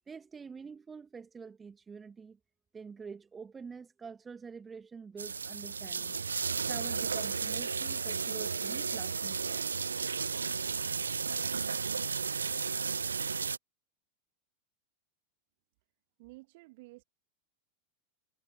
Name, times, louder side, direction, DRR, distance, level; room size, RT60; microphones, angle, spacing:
voice 1, 0.1-2.4 2.7-6.2 6.6-9.7, right 5 dB, 15° right, 2.1 m, -47 dB
sound 1, 5.2-13.6, right 5 dB, 75° right, 0.7 m, -33 dB
voice 2, 16.2-17.0, right 23 dB, 50° right, 2.0 m, -52 dB
figure-of-eight pair, 90°, 0 cm